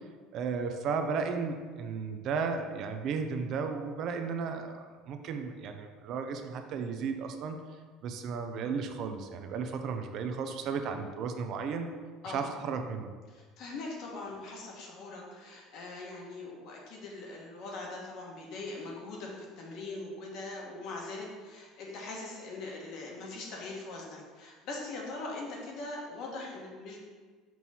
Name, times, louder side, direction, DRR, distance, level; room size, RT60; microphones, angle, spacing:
voice 1, 0.3-7.6 8.0-11.9 12.3-13.1, right 5 dB, 45° right, 6 dB, 0.5 m, -34 dB
voice 2, 13.3-27.0, left 2 dB, 55° left, -2 dB, 1.3 m, -41 dB
6.0 x 3.0 x 5.3 m, 1.5 s
cardioid pair, 150°, 0 cm